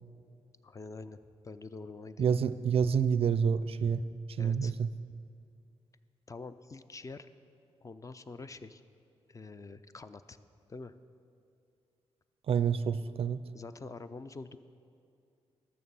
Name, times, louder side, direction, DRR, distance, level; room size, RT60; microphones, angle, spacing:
voice 1, 0.6-2.4 3.8-4.0 4.4-4.7 6.3-7.3 7.8-8.8 9.3-10.4 10.7-10.9 13.5-14.6, left 3 dB, 30° left, 12 dB, 0.4 m, -46 dB
voice 2, 2.2-4.0 4.4-4.9 12.5-13.4, right 7 dB, 60° right, 14 dB, 0.4 m, -28 dB
12.5 x 6.6 x 5.5 m, 2.4 s
cardioid pair, 85°, 11 cm